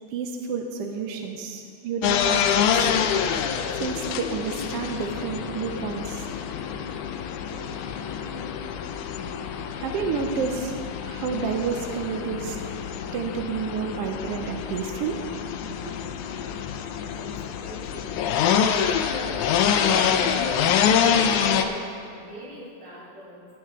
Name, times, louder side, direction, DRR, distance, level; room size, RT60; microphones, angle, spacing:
voice 1, 0.1-2.9 3.7-6.2 9.8-12.6 13.1-15.2 15.8-15.9, right 5 dB, 75° right, 4 dB, 1.3 m, -30 dB
sound 1, 2.0-21.6, left 8 dB, 80° left, 2.1 m, -26 dB
voice 2, 17.2-18.2 20.1-23.5, left 1 dB, 50° right, -6 dB, 3.5 m, -41 dB
18.0 x 7.9 x 3.7 m, 2.3 s
omnidirectional pair, 3.4 m